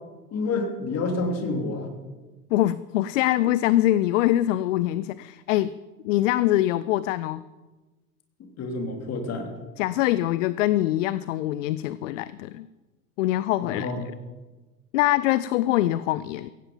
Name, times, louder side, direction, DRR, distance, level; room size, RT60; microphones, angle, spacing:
voice 1, 0.3-1.9 8.6-9.5 13.6-14.1, left 3 dB, 35° left, 3 dB, 3.3 m, -28 dB
voice 2, 2.5-5.7 6.0-7.4 9.8-12.7 13.2-14.1 14.9-16.5, left 14 dB, 55° left, 17 dB, 0.6 m, -24 dB
17.0 x 16.0 x 5.4 m, 1.2 s
figure-of-eight pair, 75°, 46 cm